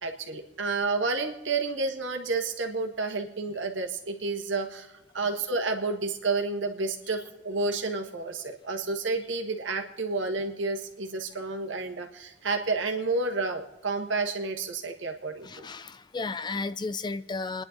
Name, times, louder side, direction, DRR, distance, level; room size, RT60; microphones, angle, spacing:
voice 1, 0.0-4.9 5.1-15.6, right 3 dB, 85° right, 1.7 m, -30 dB
voice 2, 15.4-17.6, left 3 dB, 25° left, 0.4 m, -33 dB
29.5 x 10.5 x 4.0 m
head